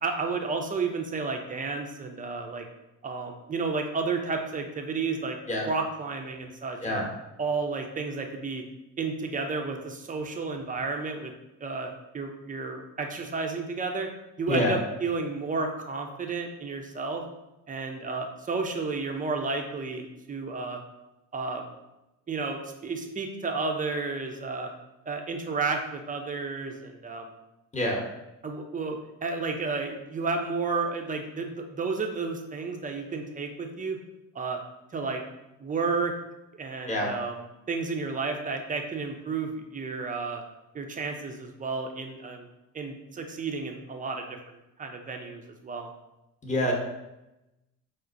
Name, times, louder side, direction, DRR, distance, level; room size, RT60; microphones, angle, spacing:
voice 1, 0.0-2.7 3.0-5.4 5.7-7.0 7.4-8.6 9.0-11.3 11.6-14.1 14.4-17.2 17.7-20.8 21.3-21.7 22.3-24.7 25.1-27.3 28.4-34.0 34.3-34.6 34.9-35.2 35.6-36.1 36.5-37.4 37.7-40.4 40.7-42.5 42.7-45.9, right 4 dB, 20° right, 4 dB, 0.5 m, -32 dB
voice 2, 46.4-46.7, left 1 dB, 15° left, 0 dB, 0.9 m, -26 dB
4.7 x 2.1 x 2.5 m, 0.95 s
hypercardioid pair, 60°, 42 cm